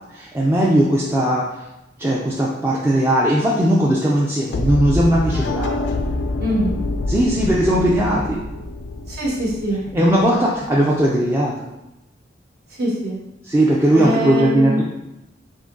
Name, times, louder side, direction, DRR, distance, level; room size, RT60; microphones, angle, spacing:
voice 1, 0.1-1.7 2.0-5.8 7.1-8.4 9.9-11.7 13.4-14.8, right 1 dB, 15° right, -5 dB, 0.4 m, -18 dB
sound 1, 4.5-10.5, left 2 dB, 70° left, 0.4 m, -26 dB
voice 2, 6.4-6.8 9.1-9.8 12.8-13.2 13.9-14.8, equal, 60° right, -4 dB, 1.2 m, -23 dB
3.8 x 2.9 x 3.7 m, 0.92 s
head